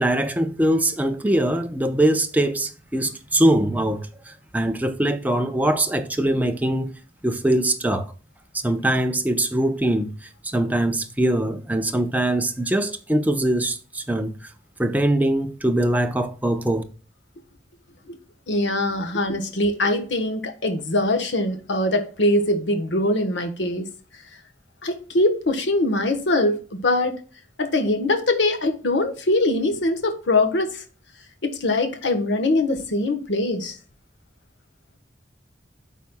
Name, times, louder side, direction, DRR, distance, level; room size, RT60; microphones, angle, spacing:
voice 1, 0.0-4.1 4.5-6.9 7.2-8.1 8.5-10.1 10.4-14.3 14.8-16.8, right 1 dB, 10° right, 0.7 m, -22 dB
voice 2, 18.5-23.9 24.8-27.2 27.6-30.8 31.4-33.7, left 2 dB, 80° left, 1.1 m, -22 dB
12.0 x 4.1 x 2.2 m
head